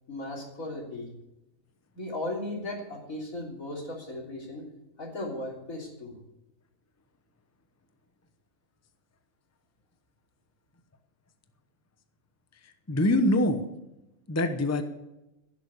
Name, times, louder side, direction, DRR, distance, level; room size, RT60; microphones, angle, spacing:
voice 1, 0.1-1.1 1.9-4.7 5.0-6.1, left 1 dB, 80° left, -1 dB, 3.9 m, -36 dB
voice 2, 12.9-13.6 14.3-14.8, left 1 dB, 15° left, 8 dB, 0.8 m, -24 dB
16.0 x 7.3 x 8.3 m, 0.95 s
omnidirectional pair, 1.4 m